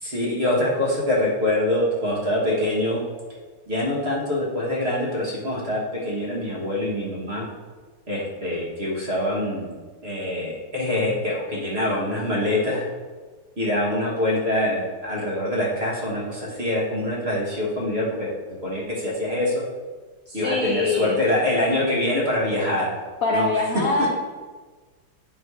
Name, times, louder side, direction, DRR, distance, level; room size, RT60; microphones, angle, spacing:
voice 1, 0.0-3.0 3.7-7.4 8.1-9.7 10.0-12.9 13.6-18.3 18.6-19.6 20.3-22.9 23.3-23.5 24.0-24.1, left 1 dB, 35° right, -5 dB, 1.7 m, -24 dB
voice 2, 20.3-21.2 23.2-24.1, left 3 dB, 60° left, 0 dB, 0.9 m, -24 dB
9.4 x 3.3 x 4.7 m, 1.4 s
omnidirectional pair, 2.2 m